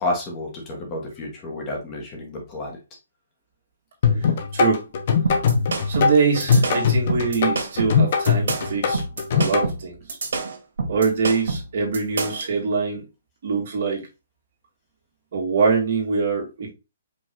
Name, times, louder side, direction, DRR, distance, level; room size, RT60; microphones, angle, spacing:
voice 1, 0.0-2.8, left 2 dB, 20° left, 1.2 m, -30 dB
sound 1, 4.0-9.6, left 6 dB, 45° left, 0.9 m, -20 dB
voice 2, 4.2-4.8 5.9-9.1 9.3-10.2 10.9-13.0 13.4-14.1 15.3-16.7, right 5 dB, 50° right, 1.9 m, -23 dB
sound 2, 5.3-12.5, right 3 dB, 80° right, 1.5 m, -28 dB
5.2 x 2.7 x 3.6 m
hypercardioid pair, 170°, 0 cm